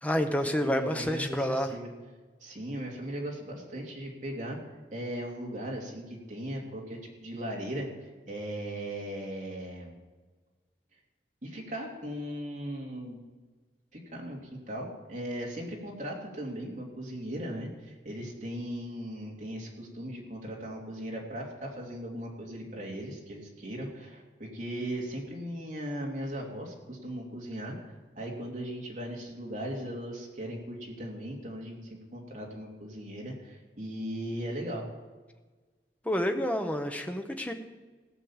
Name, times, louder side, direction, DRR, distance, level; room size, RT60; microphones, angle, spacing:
voice 1, 0.0-1.7 36.0-37.5, equal, 10° left, 5 dB, 0.9 m, -29 dB
voice 2, 0.6-1.9 2.4-4.6 4.9-9.9 11.4-13.2 13.9-14.4 14.7-34.9, equal, 45° right, -1 dB, 2.6 m, -38 dB
16.5 x 6.5 x 7.3 m, 1.3 s
head